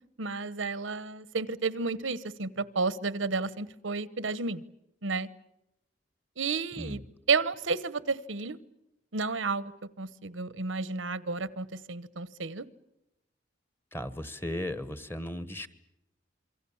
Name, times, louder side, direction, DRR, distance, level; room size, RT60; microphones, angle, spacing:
voice 1, 0.2-4.6 5.0-5.3 6.4-7.0 7.3-8.6 9.1-9.7 10.0-12.6, right 4 dB, 85° right, 17 dB, 1.0 m, -31 dB
voice 2, 6.8-7.1 13.9-15.7, left 1 dB, 10° left, 13 dB, 1.3 m, -36 dB
27.5 x 23.5 x 7.2 m, 0.88 s
head